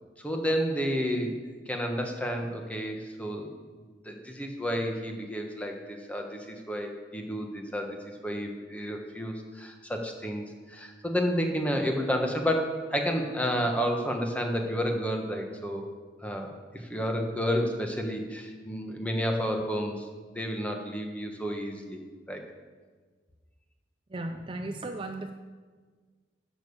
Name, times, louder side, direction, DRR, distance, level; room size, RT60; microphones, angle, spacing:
voice 1, 0.2-1.4 1.7-3.5 4.0-15.9 16.2-20.1 20.3-22.0 22.3-22.4, equal, 10° left, 2 dB, 1.2 m, -31 dB
voice 2, 24.1-25.3, right 2 dB, 30° right, 5 dB, 0.5 m, -35 dB
10.5 x 7.0 x 7.0 m, 1.5 s
head